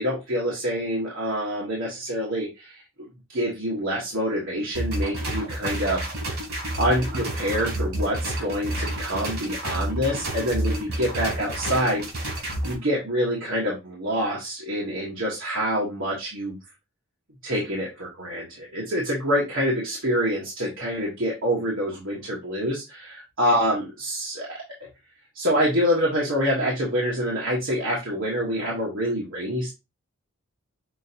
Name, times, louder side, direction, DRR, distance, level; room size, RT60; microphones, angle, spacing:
voice 1, 0.0-6.0 6.8-16.6 17.4-24.6 25.3-29.7, equal, 65° right, -4 dB, 1.2 m, -26 dB
sound 1, 4.7-12.7, right 1 dB, 80° right, 2.5 m, -29 dB
6.1 x 2.5 x 2.8 m, 0.24 s
head